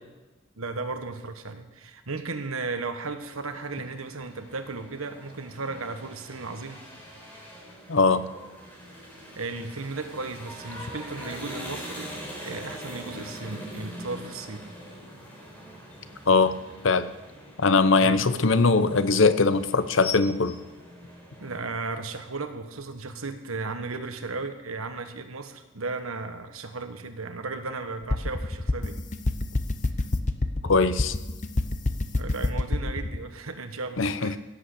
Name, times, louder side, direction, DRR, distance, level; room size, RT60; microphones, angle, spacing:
voice 1, 0.6-6.8 9.4-14.6 18.0-18.5 21.4-29.0 32.1-34.4, right 3 dB, 90° right, 8 dB, 1.4 m, -35 dB
sound 1, 3.2-21.6, equal, 10° left, 3.8 m, -43 dB
voice 2, 7.9-8.2 16.3-16.5 16.8-17.1 17.6-20.6 30.6-31.1 34.0-34.3, left 4 dB, 65° left, 13 dB, 0.8 m, -21 dB
sound 2, 18.8-19.3 20.0-21.6 22.3-22.4, left 8 dB, 90° left, 1.1 m, -38 dB
sound 3, 28.1-33.2, left 2 dB, 35° left, 0.8 m, -26 dB
16.5 x 8.3 x 6.8 m, 1.1 s
head